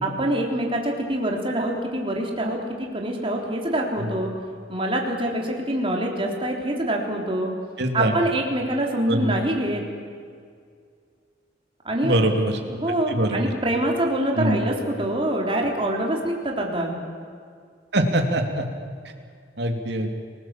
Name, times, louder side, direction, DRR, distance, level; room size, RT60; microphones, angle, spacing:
voice 1, 0.0-4.3 4.7-7.5 7.9-9.8 11.8-12.2 12.7-17.0, right 1 dB, 30° right, 0 dB, 3.6 m, -25 dB
voice 2, 7.8-8.1 9.1-9.3 12.0-12.6 13.1-13.4 14.4-14.6 17.9-18.7 19.6-20.2, right 1 dB, 65° right, 4 dB, 2.9 m, -23 dB
29.5 x 19.5 x 7.6 m, 2.1 s
head